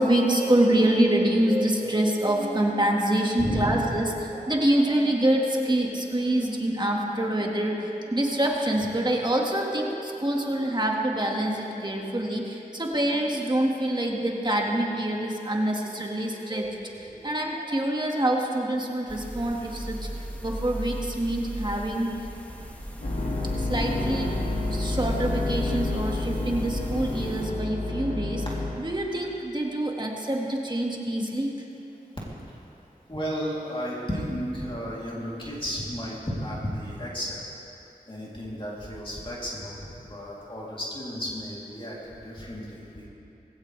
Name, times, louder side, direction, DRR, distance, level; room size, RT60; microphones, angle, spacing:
voice 1, 0.0-20.1 20.4-22.3 23.6-24.3 24.7-28.5 28.8-31.5, right 1 dB, 30° right, -1 dB, 1.9 m, -26 dB
voice 2, 3.4-3.9 33.1-37.4 38.1-43.1, equal, 35° left, -6 dB, 3.3 m, -33 dB
sound 1, 19.1-27.5, equal, 10° left, 1.5 m, -37 dB
sound 2, 23.0-28.7, left 2 dB, 70° left, 2.3 m, -29 dB
20.0 x 16.5 x 3.4 m, 2.8 s
wide cardioid pair, 60°, 16 cm